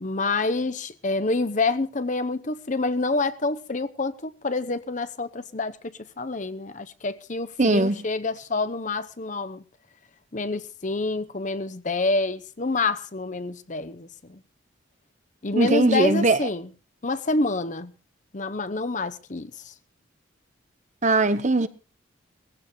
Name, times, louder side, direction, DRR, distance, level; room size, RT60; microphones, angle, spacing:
voice 1, 0.0-5.8 6.2-9.6 10.3-14.4 15.4-16.7 17.0-17.9 18.3-19.5, left 3 dB, 40° left, 0.8 m, -27 dB
voice 2, 7.6-8.0 15.5-16.4 21.0-21.7, right 2 dB, 35° right, 0.9 m, -20 dB
20.0 x 16.0 x 3.1 m
head